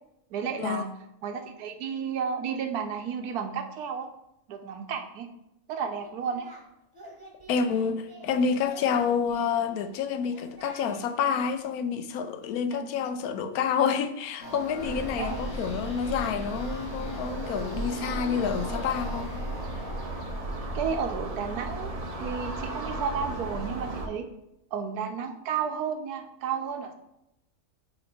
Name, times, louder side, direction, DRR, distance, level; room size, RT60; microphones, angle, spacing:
voice 1, 0.3-0.9 1.2-4.1 4.5-5.3 5.7-6.5 12.7-12.9 15.2-15.4 20.7-21.9 22.2-24.3 24.7-26.9, right 6 dB, 90° right, 1.2 m, -32 dB
Singing, 5.9-6.6 6.9-8.3 8.6-9.9 10.3-11.0 11.3-11.5, right 2 dB, 15° right, 1.0 m, -49 dB
voice 2, 7.5-19.3, left 6 dB, 75° left, 1.1 m, -28 dB
sound 1, 14.4-21.1, left 1 dB, 35° left, 1.9 m, -42 dB
sound 2, 14.8-24.1, right 2 dB, 70° right, 0.3 m, -35 dB
8.0 x 3.0 x 4.2 m
omnidirectional pair, 1.6 m